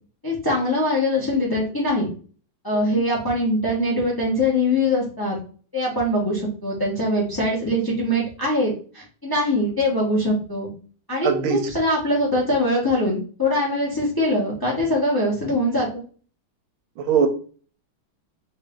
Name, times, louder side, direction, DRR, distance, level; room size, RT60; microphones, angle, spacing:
voice 1, 0.2-2.1 2.6-5.4 5.7-10.7 11.1-15.9, left 1 dB, 15° left, -4 dB, 0.7 m, -22 dB
voice 2, 11.2-11.7 17.0-17.3, right 7 dB, 80° right, 7 dB, 1.5 m, -20 dB
3.5 x 2.6 x 3.6 m, 0.40 s
omnidirectional pair, 2.3 m